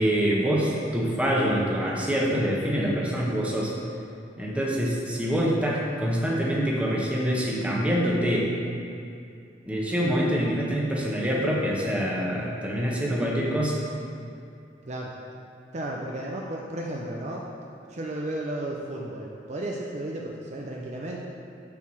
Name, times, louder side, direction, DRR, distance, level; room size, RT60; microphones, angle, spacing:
voice 1, 0.0-3.7 4.4-8.5 9.7-13.8, equal, 5° right, -4 dB, 1.0 m, -25 dB
voice 2, 15.7-17.5 17.9-21.2, right 1 dB, 40° right, -1 dB, 0.6 m, -33 dB
7.1 x 4.7 x 6.2 m, 2.5 s
head